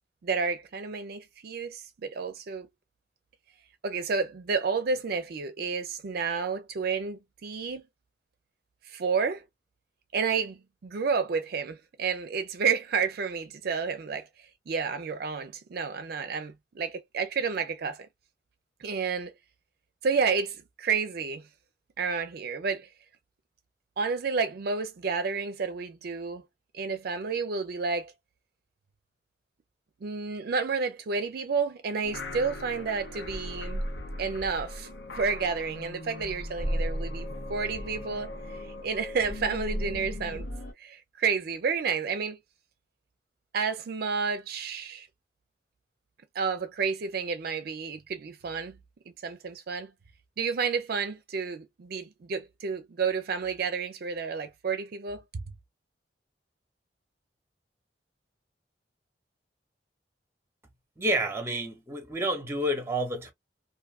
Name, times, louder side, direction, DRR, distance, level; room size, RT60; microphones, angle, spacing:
voice 1, 0.2-2.7 3.8-7.8 8.9-9.5 10.1-14.3 14.7-18.1 18.8-19.3 20.0-21.5 22.0-22.9 24.0-26.4 26.7-28.1 30.0-33.8 34.2-34.9 35.2-40.5 40.8-42.4 43.5-45.1 46.3-48.8 49.2-49.9 50.4-55.2, right 5 dB, 60° right, 0.4 m, -30 dB
sound 1, 32.0-40.7, equal, 80° left, 0.7 m, -36 dB
voice 2, 61.0-63.3, right 1 dB, 15° right, 0.7 m, -29 dB
2.5 x 2.3 x 2.3 m
head